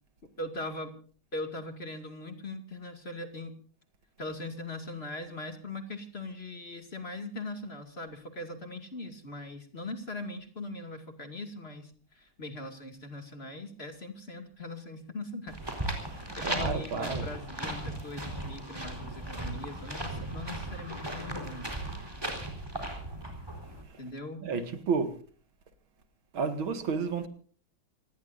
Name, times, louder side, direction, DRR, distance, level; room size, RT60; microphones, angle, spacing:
voice 1, 0.4-1.0 1.3-3.6 4.2-15.6 16.1-21.7 24.0-24.4, left 2 dB, 30° left, 2.5 m, -40 dB
sound 1, 15.5-23.8, right 1 dB, 10° right, 4.3 m, -37 dB
voice 2, 16.0-17.3 23.8-24.0 24.4-25.2 26.3-27.3, right 5 dB, 90° right, 2.7 m, -32 dB
27.5 x 19.0 x 2.6 m
omnidirectional pair, 2.2 m